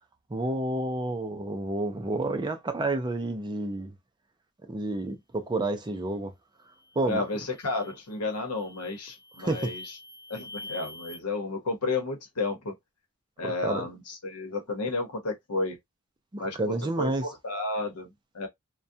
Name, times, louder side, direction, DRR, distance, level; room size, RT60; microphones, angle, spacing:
voice 1, 0.3-3.9 4.7-6.3 7.0-7.3 9.4-9.8 13.4-13.8 16.3-17.2, right 2 dB, 20° right, 0.4 m, -30 dB
sound 1, 6.7-7.0 7.5-8.0 8.5-11.2, left 1 dB, 50° left, 0.9 m, -45 dB
voice 2, 7.0-9.8 10.3-12.7 13.4-15.8 16.4-18.1 18.3-18.5, left 3 dB, 90° left, 0.9 m, -32 dB
2.3 x 2.2 x 2.7 m
head